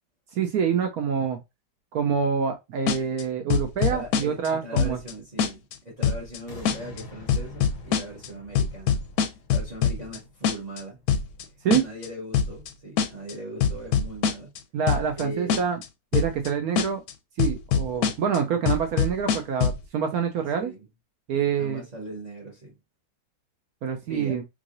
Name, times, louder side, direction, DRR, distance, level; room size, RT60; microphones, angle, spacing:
voice 1, 0.3-1.4 1.9-5.0 11.6-11.8 14.7-15.8 16.1-17.0 17.4-20.7 21.3-21.8 23.8-24.4, right 7 dB, 70° right, 0.9 m, -26 dB
sound 1, 2.9-3.2 3.5-4.5 4.8-5.1 5.4-5.7 6.0-6.4 6.6-7.0 7.3-8.3 8.5-10.2 10.4-10.8 11.1-11.4 11.7-12.1 12.3-12.7 13.0-13.3 13.6-14.6 14.9-15.2 15.5-15.8 16.1-16.5 16.8-17.1 17.4-18.4 18.7-19.8, left 7 dB, 70° left, 0.9 m, -23 dB
voice 2, 3.8-9.0 9.5-14.5 15.1-15.6 20.6-20.9 21.6-22.7 24.1-24.4, right 1 dB, 30° right, 0.8 m, -39 dB
sound 2, 6.5-11.6 12.0-12.1, left 2 dB, 35° left, 0.8 m, -46 dB
3.5 x 3.2 x 2.5 m
omnidirectional pair, 1.9 m